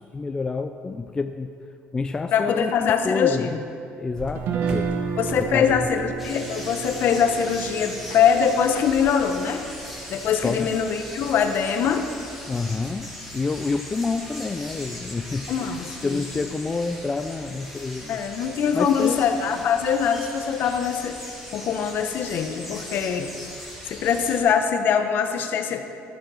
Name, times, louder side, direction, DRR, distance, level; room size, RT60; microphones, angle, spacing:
voice 1, 0.0-1.6 1.9-3.5 4.0-4.9 5.4-5.8 10.4-10.7 12.5-18.2 18.7-19.2, left 4 dB, 20° left, 7 dB, 0.4 m, -28 dB
voice 2, 2.3-3.5 5.2-9.6 10.1-12.1 15.5-16.2 18.1-21.2 21.5-23.3 23.9-25.9, left 7 dB, 55° left, 7 dB, 1.0 m, -23 dB
sound 1, 4.2-6.4 6.8-7.1 7.4-9.1, right 1 dB, 25° right, 1.3 m, -40 dB
Guitar, 4.4-10.5, right 6 dB, 65° right, 1.0 m, -32 dB
sound 2, 6.2-24.4, equal, 5° right, 2.5 m, -39 dB
13.5 x 7.8 x 6.3 m, 2.5 s
cardioid pair, 135°, 4 cm